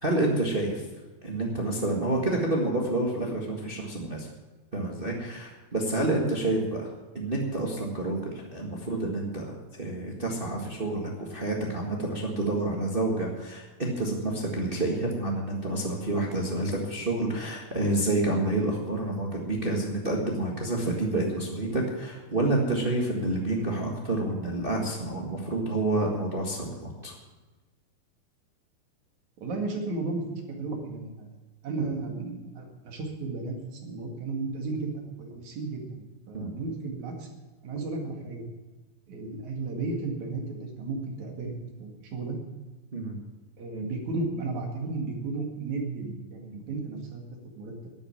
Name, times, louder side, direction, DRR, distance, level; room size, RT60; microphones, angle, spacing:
voice 1, 0.0-0.8 1.2-4.3 4.7-27.1 36.3-36.5 42.9-43.1, right 2 dB, 35° right, 0 dB, 0.9 m, -28 dB
voice 2, 29.4-31.3 31.6-37.3 37.6-38.4 39.1-42.4 43.6-47.2 47.6-47.7, right 3 dB, 55° right, 2 dB, 3.3 m, -34 dB
12.0 x 9.1 x 8.8 m, 1.2 s
omnidirectional pair, 4.2 m